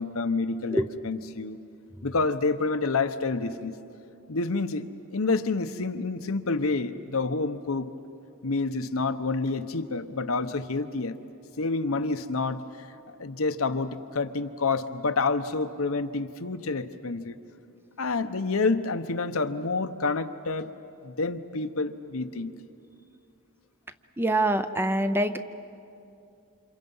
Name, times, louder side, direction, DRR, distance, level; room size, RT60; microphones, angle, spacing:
voice 1, 0.0-1.6 2.0-3.7 4.3-7.9 8.4-11.2 11.6-17.4 18.0-20.7 21.0-22.5, left 3 dB, 70° left, 9 dB, 0.9 m, -28 dB
voice 2, 24.2-25.4, right 1 dB, 10° right, 9 dB, 0.6 m, -24 dB
29.0 x 27.5 x 5.5 m, 2.6 s
head